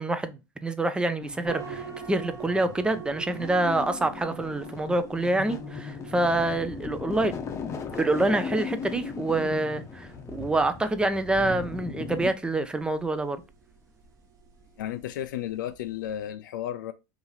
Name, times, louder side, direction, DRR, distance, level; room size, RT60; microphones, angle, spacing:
voice 1, 0.0-7.3 8.0-13.4, right 2 dB, 10° right, 0.4 m, -26 dB
sound 1, 1.2-12.3, left 5 dB, 30° left, 0.7 m, -38 dB
sound 2, 1.4-16.3, right 7 dB, 30° right, 1.0 m, -47 dB
voice 2, 14.8-16.9, left 11 dB, 85° left, 0.4 m, -33 dB
2.9 x 2.7 x 4.0 m
hypercardioid pair, 110°, 10 cm